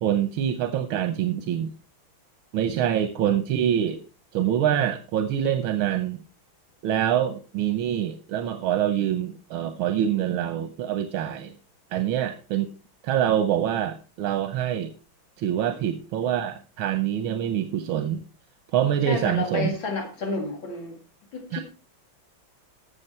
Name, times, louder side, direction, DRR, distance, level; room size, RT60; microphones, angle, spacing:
voice 1, 0.0-1.7 2.5-4.0 4.3-6.2 6.8-11.5 11.9-12.7 13.0-14.9 15.4-18.2 18.7-19.7 21.5-21.6, right 10 dB, 85° right, 1.7 m, -25 dB
voice 2, 19.1-21.0 21.3-21.6, left 3 dB, 70° left, 2.8 m, -30 dB
13.5 x 7.1 x 4.3 m
omnidirectional pair, 2.2 m